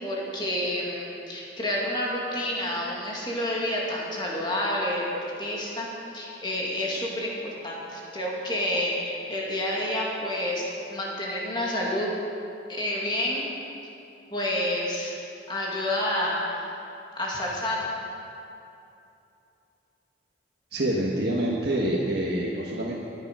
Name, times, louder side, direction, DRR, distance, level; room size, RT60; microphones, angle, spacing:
voice 1, 0.0-5.9 6.1-7.4 7.6-10.6 10.9-12.1 12.7-13.5 14.3-15.1 15.5-16.7 17.1-17.9, left 1 dB, 25° left, -3 dB, 2.3 m, -29 dB
voice 2, 20.7-23.0, right 1 dB, 60° right, -5 dB, 1.4 m, -26 dB
13.5 x 10.0 x 6.1 m, 2.8 s
head